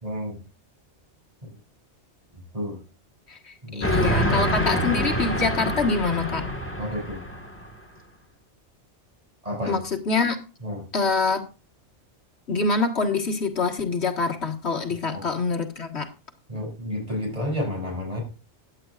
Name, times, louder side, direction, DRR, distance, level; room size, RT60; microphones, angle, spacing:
voice 1, 0.0-0.4 2.5-2.8 3.6-4.4 6.8-7.2 9.4-9.8 10.6-10.9 15.1-15.2 16.5-18.2, left 1 dB, 30° right, 0 dB, 6.7 m, -30 dB
voice 2, 3.3-6.4 9.7-10.4 10.9-11.4 12.5-16.1, left 4 dB, 65° left, 3 dB, 1.9 m, -25 dB
Train, 3.8-7.7, equal, 10° left, 1.6 m, -26 dB
16.0 x 10.5 x 2.5 m, 0.33 s
omnidirectional pair, 1.2 m